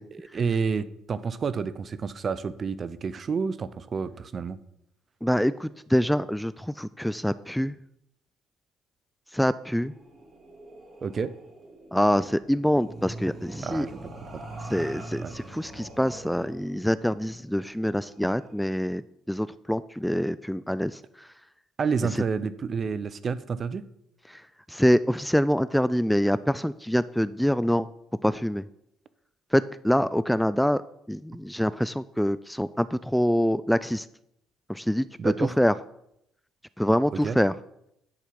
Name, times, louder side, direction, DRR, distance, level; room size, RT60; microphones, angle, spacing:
voice 1, 0.1-4.6 11.0-11.3 13.6-14.0 14.3-14.4 15.2-15.3 21.8-23.8 35.2-35.5 37.2-37.4, right 5 dB, 45° right, 15 dB, 0.6 m, -29 dB
voice 2, 5.2-7.8 9.3-9.9 11.9-13.9 14.7-19.0 19.3-21.3 24.3-24.4 24.7-27.9 28.2-28.6 29.5-30.8 31.1-34.1 34.7-35.7 36.8-37.5, equal, ahead, 16 dB, 0.3 m, -25 dB
sound 1, 9.6-18.6, right 2 dB, 25° right, 2.4 m, -44 dB
10.5 x 4.6 x 5.8 m, 0.78 s
supercardioid pair, 65°, 0 cm